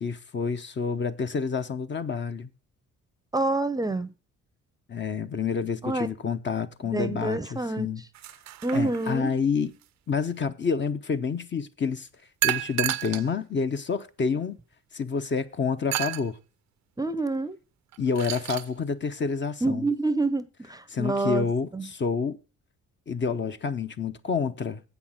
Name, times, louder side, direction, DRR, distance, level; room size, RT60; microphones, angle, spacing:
voice 1, 0.0-2.5 4.9-8.0 8.7-9.7 10.1-12.1 12.4-14.6 14.9-16.4 18.0-19.9 20.9-22.4 23.1-24.8, left 5 dB, 40° left, 0.8 m, -28 dB
voice 2, 3.3-4.1 5.8-6.1 6.9-7.9 8.6-9.3 17.0-17.6 19.6-21.5 21.7-21.9, right 2 dB, 10° right, 0.7 m, -27 dB
sound 1, 8.1-9.3 12.4-13.3 14.0-14.1 15.9-16.3 17.9-18.7, right 16 dB, 65° right, 0.6 m, -30 dB
8.0 x 5.9 x 7.3 m
cardioid pair, 90°, 30 cm